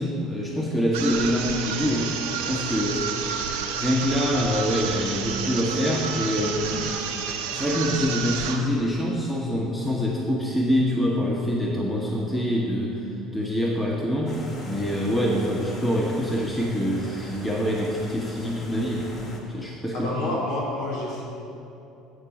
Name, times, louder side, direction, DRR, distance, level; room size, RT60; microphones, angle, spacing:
voice 1, 0.0-3.1 3.8-6.9 7.5-13.0 13.3-14.4 14.7-19.1 19.5-20.4, equal, 10° left, -3 dB, 1.1 m, -25 dB
sound 1, 0.9-8.7, right 7 dB, 75° right, 0.8 m, -30 dB
sound 2, 14.3-19.4, left 1 dB, 40° left, 1.8 m, -42 dB
voice 2, 19.9-21.2, left 1 dB, 70° left, -4 dB, 1.4 m, -29 dB
8.3 x 4.7 x 7.3 m, 2.8 s
hypercardioid pair, 70°, 0 cm